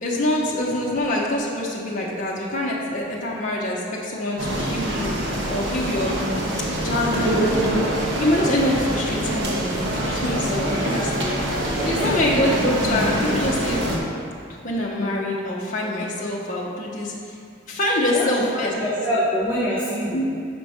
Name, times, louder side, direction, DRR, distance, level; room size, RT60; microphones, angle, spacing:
voice 1, 0.0-6.1 6.8-11.3 11.8-13.8 14.6-17.1 17.7-18.7 20.1-20.3, left 1 dB, 40° left, -4 dB, 0.8 m, -25 dB
sound 1, 4.4-14.0, right 1 dB, 60° right, 1.0 m, -24 dB
voice 2, 10.6-11.4 11.8-12.5 18.1-18.3 18.5-20.2, equal, 10° right, -11 dB, 1.1 m, -26 dB
5.7 x 5.2 x 5.0 m, 2.3 s
head